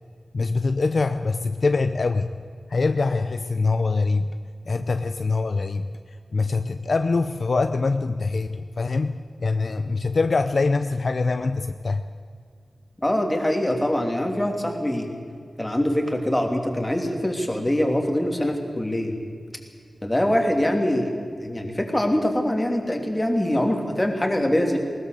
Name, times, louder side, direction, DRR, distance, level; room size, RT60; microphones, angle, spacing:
voice 1, 0.3-2.3 2.7-4.3 4.7-5.9 6.3-12.0, left 3 dB, 55° left, 9 dB, 0.7 m, -24 dB
voice 2, 13.0-15.1 15.6-19.1 20.0-24.8, left 1 dB, 15° left, 3 dB, 3.0 m, -23 dB
20.5 x 19.0 x 6.8 m, 2.2 s
wide cardioid pair, 100°, 0 cm